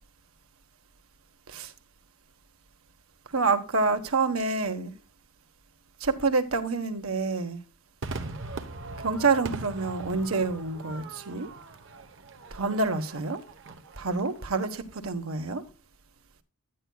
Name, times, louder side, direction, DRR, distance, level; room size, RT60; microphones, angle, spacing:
voice 1, 3.3-4.9 6.0-7.6 9.0-11.5 12.5-13.4 14.0-15.6, right 4 dB, 85° right, 1.2 m, -27 dB
Crowd / Fireworks, 8.0-14.6, right 3 dB, 60° right, 1.0 m, -40 dB
10.5 x 10.0 x 2.3 m
head